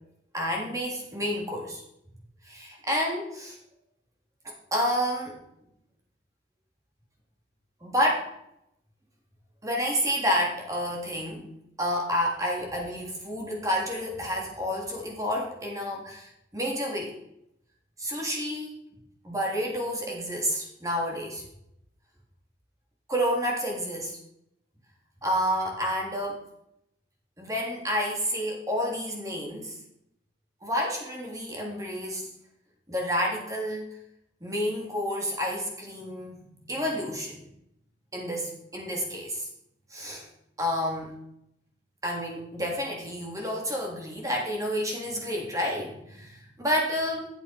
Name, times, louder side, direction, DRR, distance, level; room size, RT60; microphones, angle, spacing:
voice 1, 0.3-1.8 2.4-3.6 4.4-5.4 7.8-8.3 9.6-11.5 11.8-17.1 18.0-18.8 19.2-21.5 23.1-24.2 25.2-26.4 27.4-29.8 30.6-32.3 32.9-33.9 34.4-37.5 38.1-39.5 39.9-40.3 40.6-41.2 42.0-47.3, equal, 20° right, -1 dB, 3.5 m, -29 dB
14.0 x 8.8 x 5.4 m, 0.79 s
head